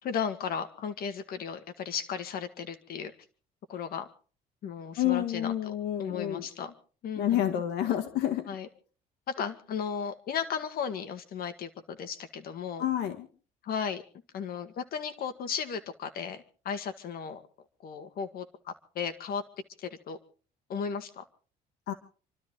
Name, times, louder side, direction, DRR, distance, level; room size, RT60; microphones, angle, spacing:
voice 1, 0.0-3.1 3.7-4.1 4.6-6.7 7.0-7.6 8.5-8.7 9.3-12.9 13.6-14.0 14.3-17.4 17.8-19.4 19.8-20.2 20.7-21.2, left 7 dB, 60° left, 8 dB, 2.0 m, -35 dB
voice 2, 5.0-6.5 7.2-8.5 12.8-13.3 21.9-22.0, left 11 dB, 80° left, 8 dB, 1.7 m, -29 dB
28.0 x 13.0 x 3.8 m, 0.40 s
cardioid pair, 110°, 17 cm